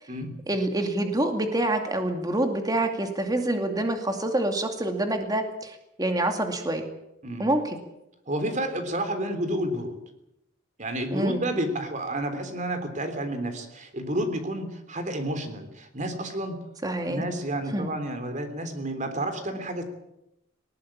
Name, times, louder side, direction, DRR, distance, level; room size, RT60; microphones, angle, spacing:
voice 1, 0.5-6.8 7.4-7.8 11.1-11.4 16.8-17.2 17.7-17.9, right 1 dB, 20° right, 5 dB, 2.4 m, -26 dB
voice 2, 8.3-10.0 10.8-16.6 17.1-19.8, right 1 dB, 35° right, 8 dB, 3.4 m, -30 dB
20.0 x 19.5 x 8.7 m, 0.87 s
head